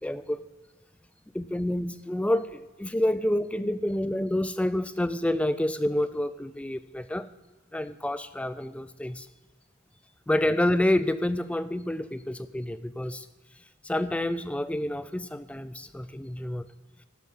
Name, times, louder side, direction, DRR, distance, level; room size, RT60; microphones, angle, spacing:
voice 1, 0.0-0.5 1.3-7.3 7.7-9.3 10.3-13.3 13.8-16.7, left 1 dB, 5° left, 13 dB, 0.3 m, -28 dB
17.5 x 6.3 x 5.5 m, 1.3 s
head